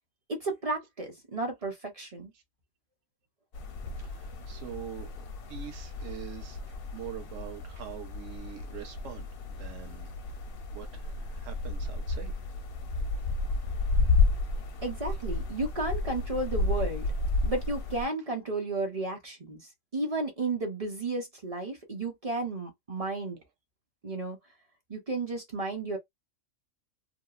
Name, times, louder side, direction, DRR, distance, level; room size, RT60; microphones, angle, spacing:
voice 1, 0.3-2.3 14.8-17.1 17.4-23.4 24.0-24.4 24.9-26.0, right 2 dB, 35° right, 0.6 m, -33 dB
sound 1, 3.5-18.1, left 3 dB, 60° left, 0.6 m, -32 dB
voice 2, 4.0-12.3, right 10 dB, 75° right, 1.1 m, -44 dB
2.8 x 2.0 x 2.4 m
omnidirectional pair, 1.4 m